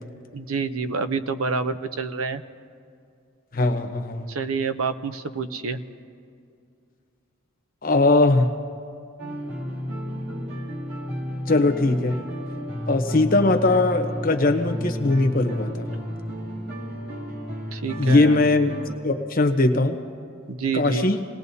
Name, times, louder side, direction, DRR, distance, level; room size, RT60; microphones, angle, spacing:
voice 1, 0.3-2.4 4.3-5.8 17.7-18.4 20.5-21.1, right 5 dB, 85° right, 11 dB, 0.7 m, -28 dB
voice 2, 3.5-4.2 7.8-8.5 11.5-12.1 12.9-15.9 17.9-18.7 19.0-20.0 20.7-21.2, left 2 dB, 45° left, 5 dB, 1.0 m, -20 dB
sound 1, 9.2-19.0, equal, 55° right, 2.2 m, -32 dB
27.5 x 19.0 x 2.8 m, 2.4 s
head